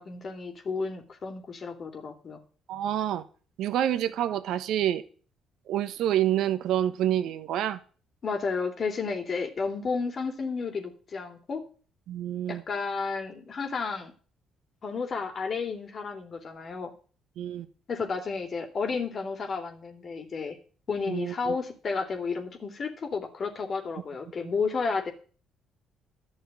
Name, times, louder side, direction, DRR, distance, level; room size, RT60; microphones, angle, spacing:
voice 1, 0.0-2.4 8.2-11.6 12.5-14.1 14.8-16.9 17.9-20.6 20.9-25.1, left 4 dB, 50° left, 5 dB, 3.5 m, -32 dB
voice 2, 2.7-3.2 3.6-5.0 5.7-7.8 12.1-12.6 17.4-17.7 21.1-21.6, right 11 dB, 70° right, 13 dB, 1.2 m, -27 dB
12.5 x 6.5 x 9.5 m, 0.40 s
hypercardioid pair, 55°, 0 cm